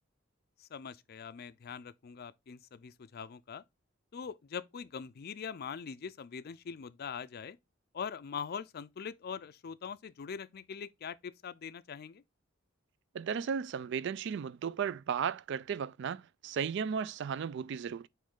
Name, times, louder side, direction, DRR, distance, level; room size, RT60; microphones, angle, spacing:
voice 1, 0.6-3.6 4.1-7.6 7.9-12.2, left 6 dB, 50° left, 0.4 m, -42 dB
voice 2, 13.1-18.1, right 7 dB, 60° right, 0.3 m, -35 dB
8.5 x 3.2 x 3.6 m
head